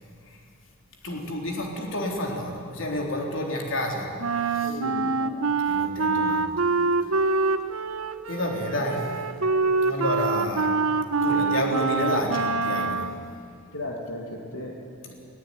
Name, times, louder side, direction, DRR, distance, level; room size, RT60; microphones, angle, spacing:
voice 1, 1.0-4.8 5.7-6.5 8.3-9.3 9.8-10.7 11.2-13.1, left 1 dB, 65° left, 0 dB, 3.7 m, -29 dB
Wind instrument woodwind instrument, 4.2-13.2, right 4 dB, 90° right, 1.0 m, -25 dB
voice 2, 4.6-5.3 13.7-15.3, left 1 dB, 85° left, -1 dB, 2.5 m, -36 dB
18.0 x 17.5 x 9.8 m, 2.2 s
head